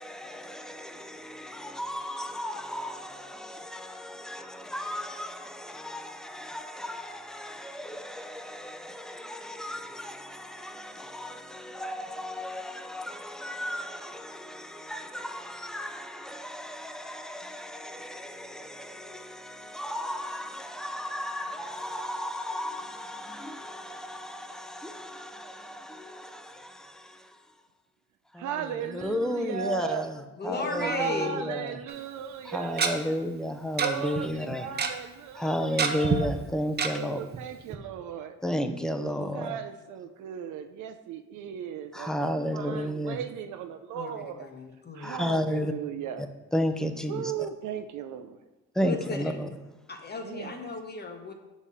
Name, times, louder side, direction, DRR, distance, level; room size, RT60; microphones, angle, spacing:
voice 1, 0.0-27.5 28.3-31.8 32.4-34.7 35.3-37.2 38.4-39.6 41.9-43.2 45.0-45.7 46.2-47.3 48.7-49.6, equal, ahead, 0.5 m, -34 dB
voice 2, 28.4-30.0 30.8-33.0 33.8-36.3 36.9-38.4 39.0-44.5 44.9-46.2 47.1-48.4 50.2-50.7, right 8 dB, 75° right, 0.5 m, -36 dB
voice 3, 30.4-31.4 43.9-45.2 48.8-49.3 49.9-51.3, left 3 dB, 35° left, 0.9 m, -35 dB
Tick-tock, 31.9-32.0 32.8-32.9 33.8-33.9 34.2-34.3 34.5-34.9 35.8-36.2 36.8-36.9 37.3-37.4 37.7-37.8, right 5 dB, 35° right, 0.7 m, -26 dB
6.9 x 4.1 x 3.7 m
cardioid pair, 90°, 30 cm